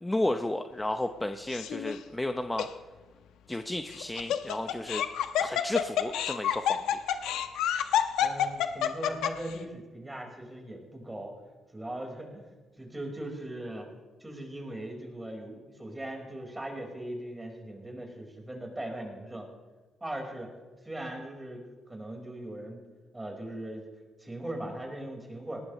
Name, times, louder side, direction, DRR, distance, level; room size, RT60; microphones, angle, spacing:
voice 1, 0.0-2.7 3.5-5.0 5.4-7.0, left 1 dB, 10° left, 7 dB, 0.8 m, -32 dB
Laughter, 1.5-2.0 2.6-2.7 3.9-9.5, left 9 dB, 90° left, 1.0 m, -28 dB
voice 2, 8.2-11.3 11.7-12.5 12.8-13.9 14.2-19.5 20.0-20.5 20.8-22.8 23.1-23.9 24.2-25.6, right 1 dB, 15° right, 1 dB, 4.8 m, -39 dB
19.0 x 18.5 x 3.2 m, 1.3 s
cardioid pair, 90°, 0 cm